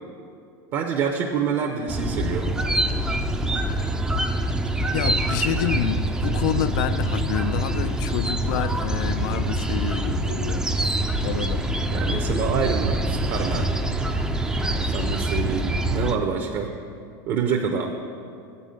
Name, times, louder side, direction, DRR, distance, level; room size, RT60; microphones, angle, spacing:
voice 1, 0.7-2.5 11.9-13.7 14.8-16.7 17.3-17.9, right 6 dB, 40° right, 2 dB, 0.7 m, -26 dB
sound 1, 1.9-16.1, right 1 dB, 5° right, 0.4 m, -25 dB
voice 2, 4.9-10.7 11.2-11.7, left 10 dB, 65° left, 12 dB, 0.4 m, -28 dB
8.2 x 5.4 x 7.5 m, 2.4 s
supercardioid pair, 130°, 11 cm